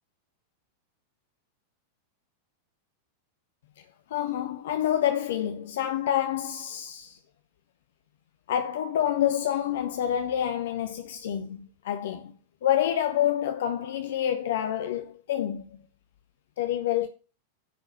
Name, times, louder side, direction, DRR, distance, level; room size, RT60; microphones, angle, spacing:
voice 1, 4.1-7.2 8.5-12.3 12.6-15.8 16.6-17.1, left 10 dB, 60° left, 0.9 m, -27 dB
10.0 x 4.7 x 6.3 m
figure-of-eight pair, 90°, 0 cm